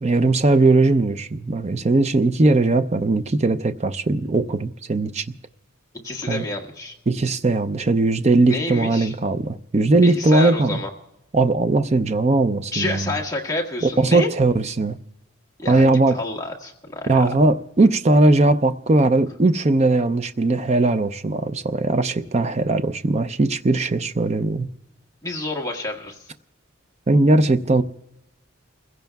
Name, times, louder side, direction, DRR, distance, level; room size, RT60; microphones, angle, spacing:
voice 1, 0.0-5.2 6.3-6.4 7.1-10.8 11.3-13.1 13.8-15.0 15.7-16.2 17.1-24.7 27.1-27.8, right 2 dB, 30° right, 0.5 m, -19 dB
voice 2, 6.0-6.9 8.5-9.1 10.0-10.9 12.7-14.3 15.6-17.3 25.2-26.3, left 2 dB, 15° left, 1.6 m, -29 dB
29.0 x 16.0 x 2.3 m
head